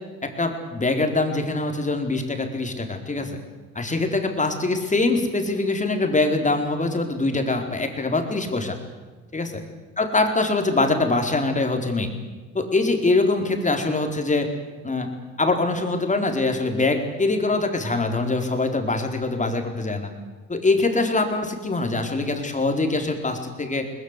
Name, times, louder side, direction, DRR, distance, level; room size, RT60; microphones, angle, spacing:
voice 1, 0.2-3.4 3.7-8.8 9.3-9.5 10.0-12.1 12.5-14.5 14.8-15.1 15.4-20.1 20.5-23.9, left 3 dB, 25° left, 5 dB, 4.2 m, -23 dB
22.0 x 20.0 x 8.4 m, 1.3 s
cardioid pair, 90°, 30 cm